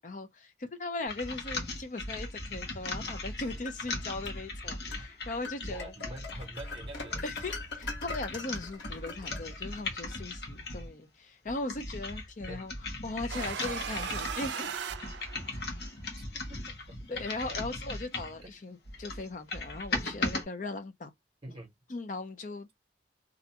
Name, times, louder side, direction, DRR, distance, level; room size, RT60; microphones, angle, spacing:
voice 1, 0.0-5.9 7.2-14.7 17.1-21.1 21.9-22.8, left 2 dB, 45° left, 0.5 m, -39 dB
sound 1, 1.1-10.9 11.5-18.4 18.8-20.4, left 2 dB, 65° left, 0.9 m, -38 dB
sound 2, 3.1-4.4 4.9-5.1 5.4-9.9, left 4 dB, 80° left, 1.1 m, -42 dB
voice 2, 5.7-7.2 12.5-12.6 16.3-16.7 17.1-17.2 18.4-18.6 21.4-21.7, right 1 dB, 30° right, 0.8 m, -46 dB
sound 3, 13.3-15.8, right 7 dB, 80° right, 0.4 m, -37 dB
2.4 x 2.2 x 2.8 m
head